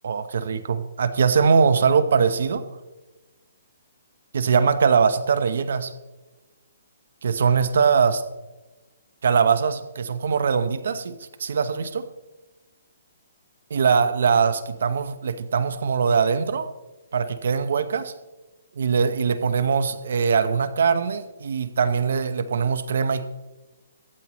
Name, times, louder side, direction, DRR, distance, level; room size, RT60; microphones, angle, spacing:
voice 1, 0.0-2.6 4.3-5.9 7.2-8.2 9.2-11.1 11.4-12.0 13.7-16.7 17.1-18.1 18.8-23.3, right 6 dB, 70° right, 12 dB, 0.9 m, -21 dB
23.5 x 8.7 x 3.1 m, 1.2 s
hypercardioid pair, 145°, 0 cm